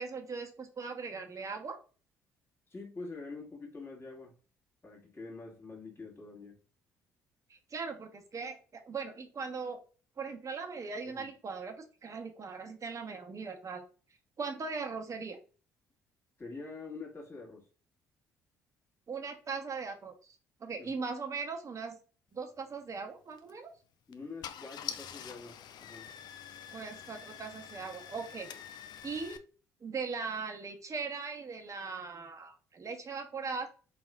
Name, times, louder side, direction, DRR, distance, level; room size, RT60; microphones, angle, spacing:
voice 1, 0.0-1.8 7.5-9.8 10.2-13.8 14.4-15.4 19.1-22.0 22.3-23.7 26.7-28.5 29.0-29.4 29.8-33.7, right 4 dB, 40° right, 5 dB, 0.9 m, -39 dB
voice 2, 2.7-4.3 4.8-6.6 11.0-11.3 16.4-17.7 20.8-20.9 24.1-26.1, left 3 dB, 30° left, 0 dB, 1.7 m, -46 dB
Car / Engine starting, 23.3-23.5 24.1-24.2 24.4-29.4, left 9 dB, 55° left, 0.4 m, -45 dB
4.0 x 3.5 x 2.2 m, 0.36 s
figure-of-eight pair, 50°, 9 cm